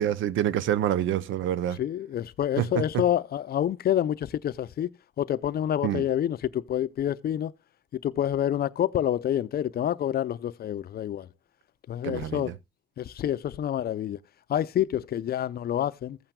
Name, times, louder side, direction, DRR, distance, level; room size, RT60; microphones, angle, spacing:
voice 1, 0.0-1.8 2.6-3.0 5.8-6.1 12.0-12.5, right 11 dB, 80° right, 0.6 m, -27 dB
voice 2, 1.8-4.9 5.2-7.5 7.9-11.3 11.9-12.5 13.0-14.2 14.5-16.2, left 11 dB, 50° left, 0.5 m, -27 dB
15.0 x 8.8 x 2.2 m
cardioid pair, 90°, 20 cm